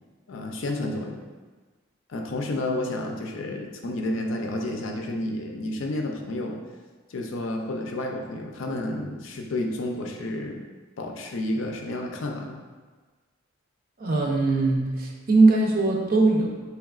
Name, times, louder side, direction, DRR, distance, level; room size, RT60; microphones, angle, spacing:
voice 1, 0.3-1.2 2.1-6.6 7.1-10.6 11.0-12.6, left 1 dB, 75° left, 2 dB, 0.5 m, -30 dB
voice 2, 14.0-16.6, right 3 dB, 45° right, -1 dB, 0.6 m, -21 dB
4.6 x 3.3 x 2.3 m, 1.4 s
head